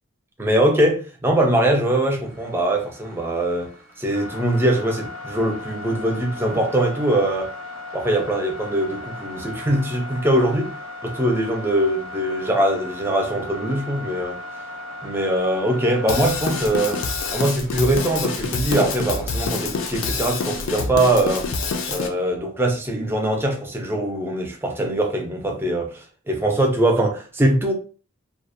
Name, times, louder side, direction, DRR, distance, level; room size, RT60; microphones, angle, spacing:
voice 1, 0.4-3.7 4.0-7.5 7.9-10.7 11.2-14.4 15.0-17.0 17.3-21.5 21.9-27.7, right 1 dB, 10° right, 0.4 m, -22 dB
sound 1, 2.2-19.8, left 2 dB, 85° right, 0.7 m, -37 dB
Drum kit / Drum, 16.1-22.1, left 4 dB, 85° left, 0.4 m, -27 dB
2.3 x 2.0 x 2.6 m
head